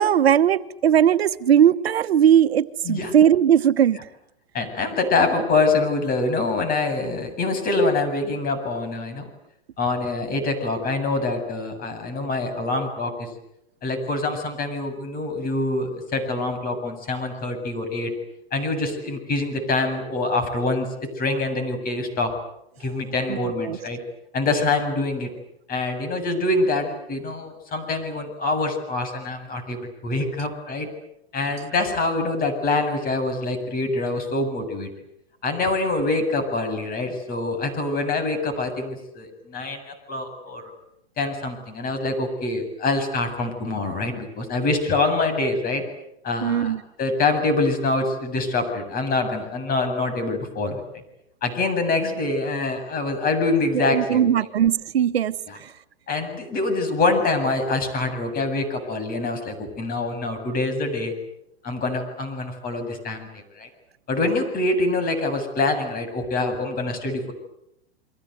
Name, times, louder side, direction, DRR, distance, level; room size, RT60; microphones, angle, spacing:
voice 1, 0.0-4.0 23.3-23.8 46.4-46.8 53.7-55.4 55.6-55.7, right 9 dB, 85° right, 12 dB, 1.2 m, -19 dB
voice 2, 4.5-9.3 9.8-13.3 13.8-18.1 18.5-20.9 21.2-22.3 22.8-24.0 24.3-25.3 25.7-30.9 31.3-34.9 35.4-40.7 41.2-45.8 46.2-50.8 51.4-54.3 55.5-55.6 56.1-61.1 61.6-63.7 64.1-67.3, left 3 dB, 30° left, 7 dB, 7.8 m, -25 dB
30.0 x 23.5 x 8.1 m, 0.81 s
hypercardioid pair, 120°, 30 cm